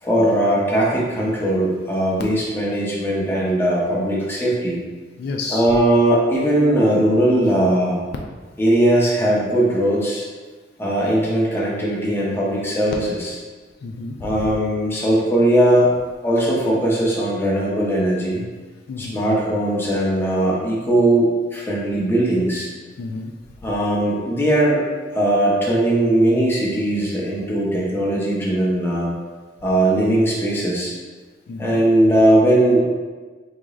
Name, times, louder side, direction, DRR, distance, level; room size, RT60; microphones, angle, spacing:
voice 1, 0.0-4.8 5.5-8.0 8.6-10.2 10.8-13.2 14.2-15.9 16.2-18.4 19.0-22.7 23.6-24.8 25.1-29.1 29.6-30.9 31.6-32.8, right 1 dB, 15° left, -5 dB, 0.7 m, -19 dB
voice 2, 5.2-5.6 13.8-14.5 18.9-19.2 23.0-23.3 31.5-31.8, left 3 dB, 60° left, 1 dB, 0.3 m, -30 dB
3.7 x 2.4 x 3.0 m, 1.3 s
head